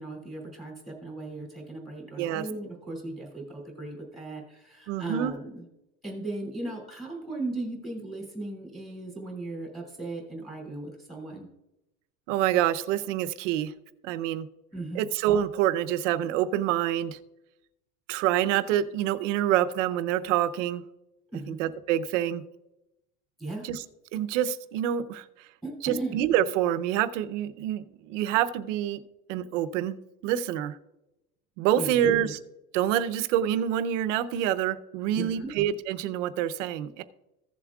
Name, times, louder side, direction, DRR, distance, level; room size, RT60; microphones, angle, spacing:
voice 1, 0.0-5.6 6.0-11.5 14.7-15.1 21.3-21.6 23.4-23.7 25.6-26.2 31.8-32.3 35.1-35.5, right 2 dB, ahead, -2 dB, 2.7 m, -37 dB
voice 2, 4.9-5.3 12.3-13.7 14.0-14.5 14.9-17.2 18.1-20.8 21.5-22.4 23.6-23.8 24.1-25.2 25.8-29.0 29.3-30.8 31.6-32.4 32.7-37.0, right 11 dB, 65° right, 12 dB, 0.8 m, -27 dB
15.5 x 7.2 x 2.4 m, 0.90 s
supercardioid pair, 175°, 41 cm